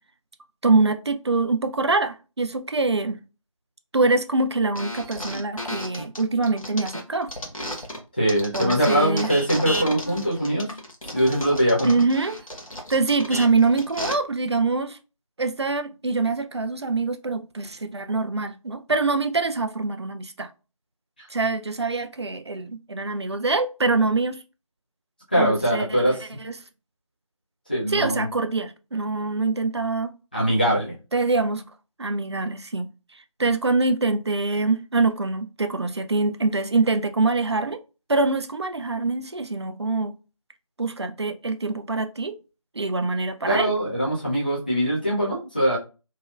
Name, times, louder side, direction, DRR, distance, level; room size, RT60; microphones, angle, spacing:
voice 1, 0.6-3.2 3.9-7.3 8.5-9.3 11.8-12.4 12.9-15.0 15.4-20.5 21.3-24.4 25.4-26.2 26.4-26.6 27.9-30.1 31.1-31.6 32.0-32.9 33.4-37.8 38.1-40.2 40.8-42.4 42.7-43.7, right 3 dB, 50° right, 0.4 m, -24 dB
sound 1, 4.7-8.0 8.3-14.1, equal, 75° left, 1.0 m, -33 dB
voice 2, 8.2-10.7 11.1-11.9 25.3-26.2 27.7-28.3 30.3-30.9 43.5-45.8, equal, 15° left, 0.6 m, -22 dB
3.0 x 2.7 x 2.4 m
figure-of-eight pair, 165°, 18 cm